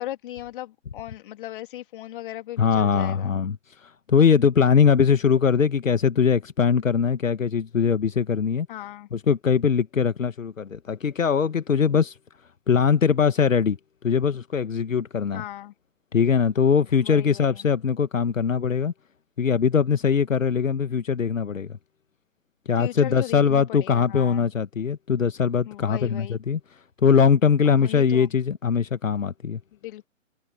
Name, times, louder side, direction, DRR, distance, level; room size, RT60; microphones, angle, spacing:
voice 1, 0.0-3.4 8.7-9.1 15.3-15.7 17.0-17.7 22.8-24.5 25.6-26.4 27.6-28.3 29.7-30.1, left 14 dB, 40° left, 3.0 m, -37 dB
voice 2, 2.6-3.6 3.8-8.7 9.1-12.1 12.7-13.8 14.0-15.4 16.1-18.9 19.4-21.8 22.7-26.6 27.0-29.6, left 6 dB, 80° left, 1.3 m, -21 dB
figure-of-eight pair, 130°, 39 cm